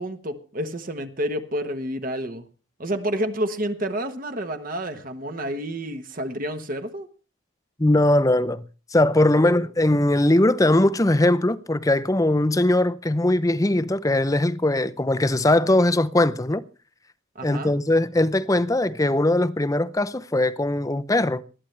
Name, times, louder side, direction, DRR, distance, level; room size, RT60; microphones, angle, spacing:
voice 1, 0.0-2.5 2.8-7.1 9.3-9.6 17.3-17.7, right 1 dB, 40° right, 1.2 m, -29 dB
voice 2, 7.8-8.6 8.9-16.6 17.4-21.4, left 1 dB, 15° left, 0.6 m, -20 dB
20.5 x 13.0 x 3.3 m
head